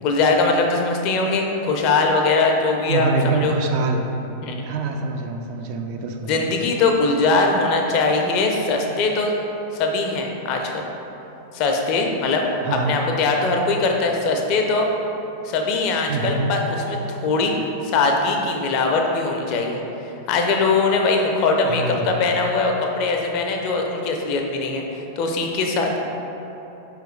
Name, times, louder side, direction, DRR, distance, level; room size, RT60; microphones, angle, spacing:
voice 1, 0.0-3.5 4.4-4.6 6.3-9.3 9.7-10.9 11.5-12.4 12.7-14.9 15.4-17.5 17.8-19.8 20.3-26.0, left 3 dB, 40° left, 2 dB, 0.5 m, -21 dB
voice 2, 2.9-4.1 4.6-6.5 12.6-13.1 16.1-16.5 21.6-22.1, right 3 dB, 45° right, 3 dB, 0.3 m, -25 dB
4.7 x 3.1 x 3.2 m, 3.0 s
figure-of-eight pair, 90°, 0 cm